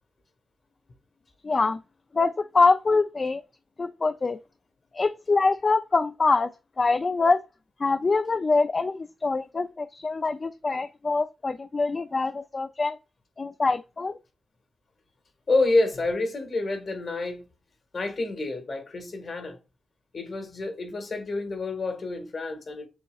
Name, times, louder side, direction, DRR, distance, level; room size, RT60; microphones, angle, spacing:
voice 1, 1.4-1.8 2.1-3.4 3.8-4.4 4.9-6.5 6.8-7.4 7.8-13.0 13.4-14.2, left 3 dB, 45° left, 0.3 m, -24 dB
voice 2, 15.5-17.5 17.9-19.6 20.1-22.9, left 2 dB, 60° left, 1.5 m, -28 dB
6.9 x 2.9 x 2.3 m
cardioid pair, 60°, 0 cm